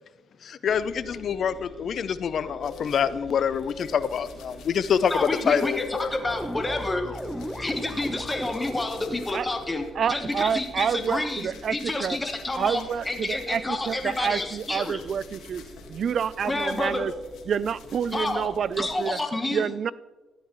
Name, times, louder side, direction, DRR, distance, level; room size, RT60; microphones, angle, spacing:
voice 1, 0.4-5.1 5.5-6.1, left 7 dB, 60° left, 15 dB, 0.6 m, -26 dB
Oil (low pass filter), 0.6-18.9, equal, 15° right, 3.2 m, -47 dB
sound 1, 2.6-13.6 13.8-19.2, left 7 dB, 85° left, 1.7 m, -51 dB
voice 2, 5.1-7.0 7.6-15.0 16.4-17.1 18.1-18.5 18.8-19.7, left 2 dB, 15° left, 4 dB, 1.3 m, -29 dB
sound 2, 6.2-9.3, equal, ahead, 1.0 m, -35 dB
voice 3, 10.0-12.2 12.5-15.6 15.9-17.1 17.5-19.2 19.5-19.9, right 7 dB, 55° right, 18 dB, 0.4 m, -28 dB
13.5 x 11.0 x 3.1 m, 1.2 s
cardioid pair, 90°, 0 cm